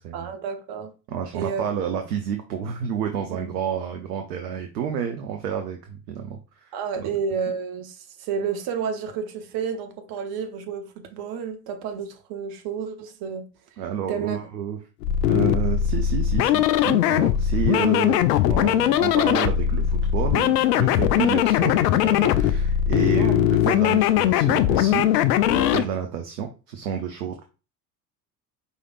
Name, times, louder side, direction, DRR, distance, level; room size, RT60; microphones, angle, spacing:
voice 1, 0.1-0.9 1.3-1.6 3.3-3.4 6.7-13.5 14.1-14.4 23.2-23.4, right 6 dB, 50° right, 1.0 m, -30 dB
voice 2, 1.1-7.1 13.8-14.8 15.3-25.1 25.4-27.4, right 8 dB, 70° right, 0.8 m, -30 dB
sound 1, 15.0-25.8, left 11 dB, 75° left, 0.5 m, -20 dB
5.0 x 4.0 x 2.5 m
figure-of-eight pair, 60°, 49 cm